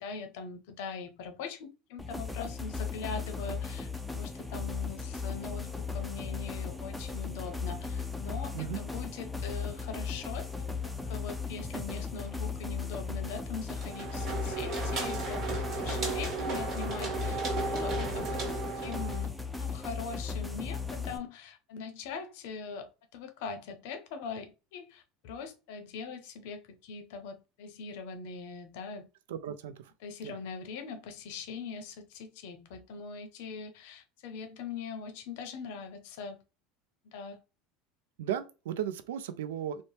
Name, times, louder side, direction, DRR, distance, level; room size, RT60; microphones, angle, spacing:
voice 1, 0.0-18.5 18.8-29.1 30.0-36.4 37.1-37.4, left 5 dB, 70° left, 0.6 m, -42 dB
sound 1, 2.0-21.2, left 5 dB, 5° left, 0.4 m, -36 dB
sound 2, 13.8-19.3, right 3 dB, 45° right, 1.3 m, -34 dB
voice 2, 29.3-29.9 30.2-30.4 38.2-39.8, right 10 dB, 85° right, 0.3 m, -35 dB
2.7 x 2.0 x 3.1 m
hypercardioid pair, 100°, 0 cm